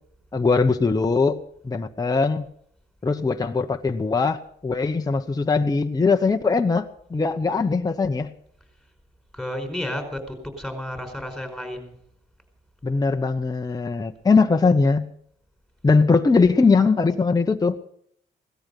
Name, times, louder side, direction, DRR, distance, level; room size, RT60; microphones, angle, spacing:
voice 1, 0.3-1.4 1.6-2.5 3.0-8.3 12.8-15.1 15.8-17.8, left 4 dB, 20° left, 5 dB, 0.9 m, -21 dB
voice 2, 9.3-11.9, left 1 dB, ahead, 5 dB, 4.7 m, -32 dB
17.5 x 13.5 x 5.3 m, 0.64 s
cardioid pair, 90°, 20 cm